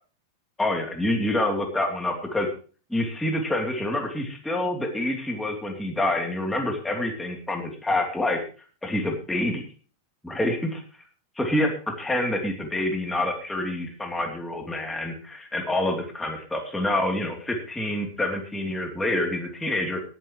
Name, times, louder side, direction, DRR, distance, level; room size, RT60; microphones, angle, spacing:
voice 1, 0.6-2.5 2.9-8.4 8.8-9.6 10.2-10.8 11.3-11.7 12.0-20.0, left 1 dB, ahead, 2 dB, 1.3 m, -27 dB
19.5 x 10.5 x 3.1 m, 0.38 s
omnidirectional pair, 5.5 m